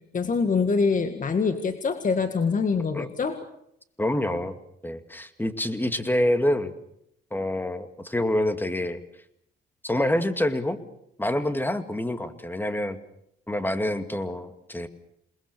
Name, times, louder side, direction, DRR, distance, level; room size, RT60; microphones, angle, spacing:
voice 1, 0.1-3.3, left 5 dB, 40° left, 8 dB, 1.9 m, -24 dB
voice 2, 4.0-4.5 4.8-6.7 7.3-9.0 9.8-10.8 11.2-13.0 13.5-14.9, left 1 dB, 10° left, 9 dB, 2.3 m, -26 dB
28.0 x 21.0 x 6.9 m, 0.75 s
cardioid pair, 90°, 20 cm